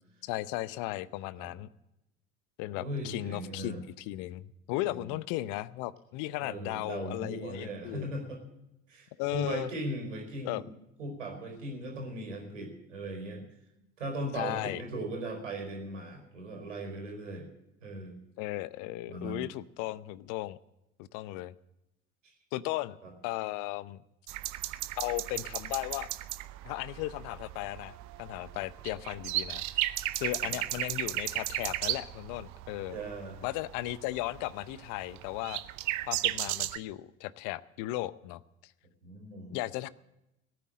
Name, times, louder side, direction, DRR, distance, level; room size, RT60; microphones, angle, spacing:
voice 1, 0.2-1.7 2.6-8.1 9.2-9.7 10.4-10.6 14.3-14.8 18.4-20.6 21.0-21.5 22.5-23.0 23.2-24.0 25.0-26.1 26.6-33.0 33.4-35.6 36.1-38.7 39.5-39.9, left 17 dB, 55° left, 18 dB, 0.8 m, -36 dB
voice 2, 2.7-3.8 4.8-5.1 6.4-8.4 8.9-10.7 11.0-13.4 14.0-17.5 17.8-18.2 19.1-19.4 22.2-22.3 23.0-23.1 30.4-30.6 32.9-33.4 39.0-39.6, right 1 dB, 80° right, 3 dB, 4.6 m, -38 dB
sound 1, 24.3-36.8, right 16 dB, 50° right, 0.8 m, -35 dB
17.5 x 9.5 x 7.5 m, 0.88 s
figure-of-eight pair, 65°, 36 cm